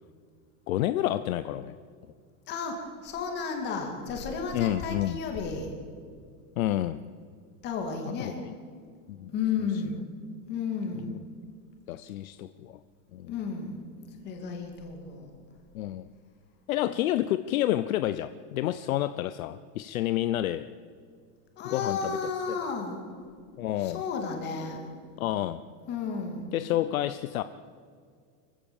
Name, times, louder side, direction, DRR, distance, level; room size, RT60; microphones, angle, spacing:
voice 1, 0.7-1.8 4.5-5.2 6.6-7.0 8.1-8.5 9.1-9.3 11.0-11.1 11.9-12.8 13.1-13.3 15.7-16.1 16.7-20.7 21.6-22.2 23.6-24.0 25.2-25.6 26.5-27.4, left 13 dB, 60° left, 12 dB, 0.7 m, -29 dB
voice 2, 2.5-5.8 7.6-8.4 9.3-10.0 10.5-11.2 13.3-15.4 21.6-23.0 23.8-24.9 25.9-26.5, left 5 dB, 20° left, 3 dB, 2.6 m, -33 dB
25.0 x 15.0 x 7.1 m, 2.1 s
supercardioid pair, 180°, 48 cm